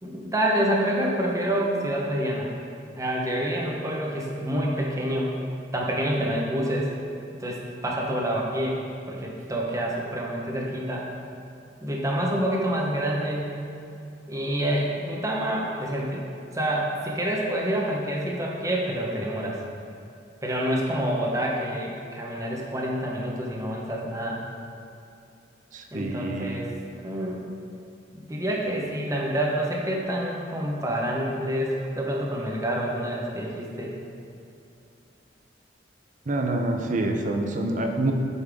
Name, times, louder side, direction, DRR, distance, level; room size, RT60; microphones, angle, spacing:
voice 1, 0.0-2.5 3.0-5.3 5.7-6.9 7.3-8.8 9.1-11.1 11.8-13.6 14.3-16.2 16.5-19.6 20.4-24.4 25.9-26.7 27.0-27.5 28.1-33.9, right 1 dB, 20° right, -2 dB, 0.8 m, -27 dB
voice 2, 25.7-26.6 36.3-38.1, right 2 dB, 45° right, 3 dB, 0.6 m, -27 dB
8.2 x 5.6 x 3.5 m, 2.6 s
head